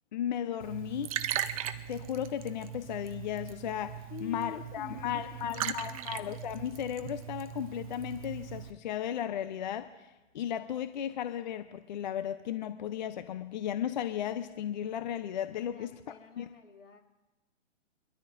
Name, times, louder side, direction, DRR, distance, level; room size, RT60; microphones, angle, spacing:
voice 1, 0.1-1.1 1.9-10.1 10.3-15.9 16.4-16.5, left 10 dB, 40° left, 11 dB, 0.6 m, -35 dB
Liquid, 0.6-8.7, right 10 dB, 30° right, 0.6 m, -39 dB
voice 2, 4.1-6.2 15.7-17.0, left 5 dB, 80° left, 1 dB, 2.8 m, -47 dB
24.0 x 13.5 x 2.6 m, 1.1 s
hypercardioid pair, 145°, 37 cm